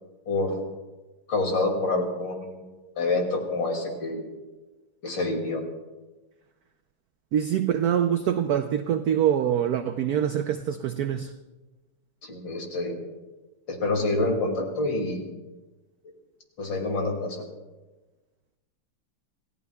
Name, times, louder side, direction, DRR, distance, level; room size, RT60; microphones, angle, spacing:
voice 1, 0.3-0.6 1.3-2.7 3.0-4.3 5.0-5.6 12.2-13.0 13.7-15.2 16.6-17.4, left 2 dB, 60° left, 2 dB, 3.2 m, -27 dB
voice 2, 7.3-11.3, right 9 dB, 80° right, 8 dB, 0.8 m, -24 dB
27.5 x 16.0 x 2.3 m, 1.2 s
omnidirectional pair, 2.3 m